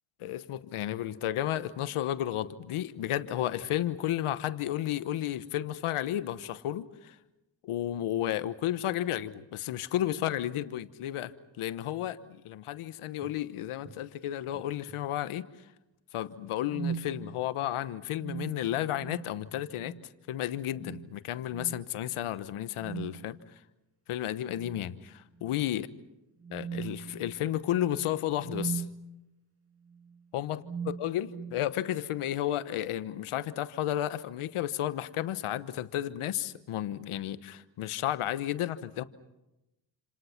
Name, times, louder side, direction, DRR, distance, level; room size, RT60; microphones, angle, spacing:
voice 1, 0.2-7.2 7.6-11.3 11.6-15.5 16.1-19.9 20.3-23.4 24.1-25.9 26.5-28.8 30.3-39.0, left 12 dB, 85° left, 1.2 m, -32 dB
sound 1, 13.2-13.4 13.8-14.0 14.5-15.0 16.7-17.2 18.1-19.4 19.8-20.0 20.7-21.2 21.5-21.8 22.8-23.3 24.5-25.0 25.4-25.5 26.4-29.0 29.9-30.1 30.6-31.6, right 7 dB, 25° right, 2.2 m, -40 dB
28.5 x 27.5 x 5.9 m
supercardioid pair, 45°, 49 cm